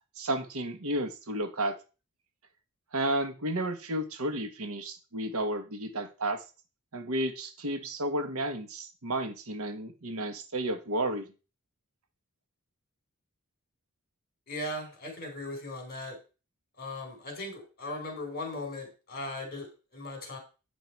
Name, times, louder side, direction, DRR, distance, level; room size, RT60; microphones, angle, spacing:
voice 1, 0.2-1.8 2.9-6.4 6.9-11.3, right 1 dB, 75° right, 7 dB, 1.2 m, -32 dB
voice 2, 14.5-16.2 16.8-20.4, left 2 dB, 45° left, 4 dB, 3.7 m, -38 dB
9.1 x 5.5 x 4.5 m, 0.32 s
head